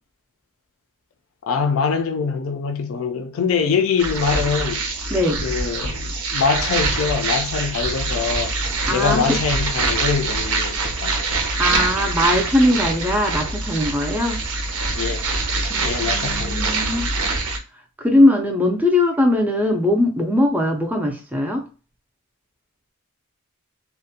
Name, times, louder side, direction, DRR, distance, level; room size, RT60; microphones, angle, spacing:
voice 1, 1.4-4.8 5.4-8.6 8.9-11.4 12.8-12.9 14.9-15.3 15.8-16.9 17.2-17.3, left 5 dB, 65° left, 0.4 m, -24 dB
sound 1, 4.0-17.6, right 3 dB, 70° right, 0.6 m, -24 dB
voice 2, 5.1-5.5 8.9-9.4 11.6-14.4 15.7-17.1 18.0-21.6, left 1 dB, 10° right, 0.4 m, -20 dB
2.4 x 2.1 x 2.7 m
head